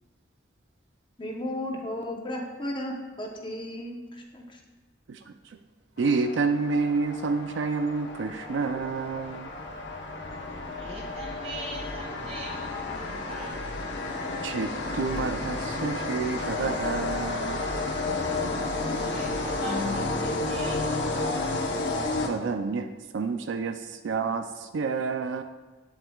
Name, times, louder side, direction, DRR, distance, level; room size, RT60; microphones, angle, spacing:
voice 1, 1.2-4.6, left 1 dB, 25° left, 1 dB, 0.8 m, -34 dB
voice 2, 5.1-5.6 6.0-9.5 14.4-17.6 22.3-25.4, right 4 dB, 75° right, 7 dB, 0.4 m, -29 dB
sound 1, 6.0-22.8, left 2 dB, 65° left, 0.9 m, -32 dB
voice 3, 10.8-13.5 19.0-21.5, equal, 35° right, -2 dB, 1.6 m, -39 dB
8.5 x 7.6 x 2.3 m, 1.2 s
head